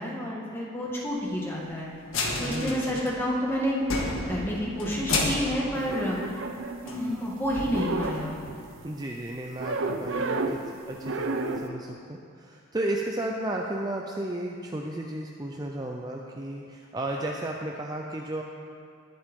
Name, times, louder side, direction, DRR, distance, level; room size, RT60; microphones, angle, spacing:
voice 1, 0.0-1.9 2.4-3.9 4.3-6.4 6.8-8.4, equal, 10° left, -4 dB, 1.8 m, -29 dB
sound 1, 2.0-3.5 3.8-6.6 6.9-7.0 7.4-8.4, left 2 dB, 85° left, 1.6 m, -31 dB
voice 2, 2.4-3.0 8.8-10.6 10.9-18.4, right 1 dB, 20° right, 0 dB, 0.6 m, -33 dB
sound 2, 5.7-7.3 7.6-8.8 9.6-10.7 11.0-11.7, right 3 dB, 70° right, 0.7 m, -32 dB
19.5 x 7.7 x 3.7 m, 2.3 s
head